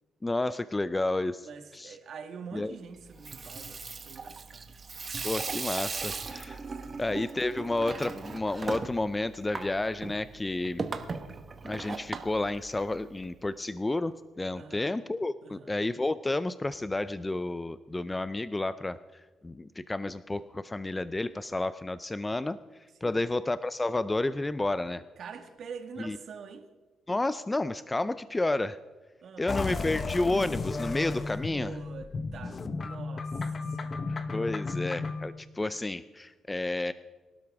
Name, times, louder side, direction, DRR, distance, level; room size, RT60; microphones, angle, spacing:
voice 1, 0.2-1.5 1.7-2.0 2.5-2.8 5.2-6.6 7.0-10.9 11.6-14.1 14.4-19.0 19.4-22.6 23.0-25.0 26.0-26.2 27.1-28.8 29.4-31.7 34.3-36.9, left 2 dB, 15° left, 14 dB, 0.5 m, -31 dB
voice 2, 1.4-4.7 6.7-7.0 14.6-14.9 15.4-15.7 23.0-23.3 25.2-26.7 29.2-29.5 31.5-34.1, right 6 dB, 60° right, 6 dB, 1.7 m, -45 dB
Water tap faucet / Sink (filling or washing), 3.0-13.2, right 4 dB, 35° right, 1.3 m, -38 dB
sound 1, 29.5-35.3, left 3 dB, 35° left, 1.0 m, -34 dB
23.0 x 12.5 x 3.6 m, 1.3 s
cardioid pair, 90°, 0 cm